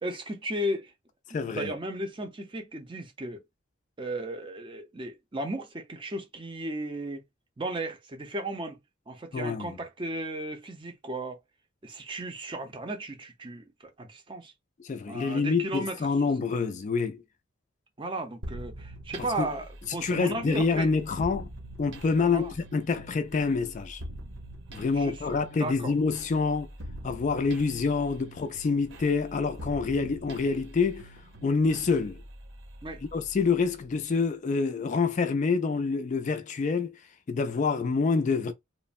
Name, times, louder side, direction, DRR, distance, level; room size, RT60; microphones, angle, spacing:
voice 1, 0.0-0.9 1.3-3.4 4.0-7.2 7.6-8.8 9.1-11.4 11.8-14.5 15.1-16.1 18.0-20.9 22.2-22.5 24.9-25.9 32.8-33.0, right 1 dB, 25° right, 0.6 m, -35 dB
voice 2, 1.3-1.7 9.3-9.7 14.8-17.2 19.4-19.5 20.0-21.5 21.8-24.0 24.7-26.7 27.0-31.1 31.4-32.2 33.1-37.0 37.3-38.5, left 4 dB, 35° left, 0.3 m, -27 dB
sound 1, 18.4-34.1, right 1 dB, 60° right, 0.8 m, -44 dB
3.1 x 2.0 x 2.5 m
head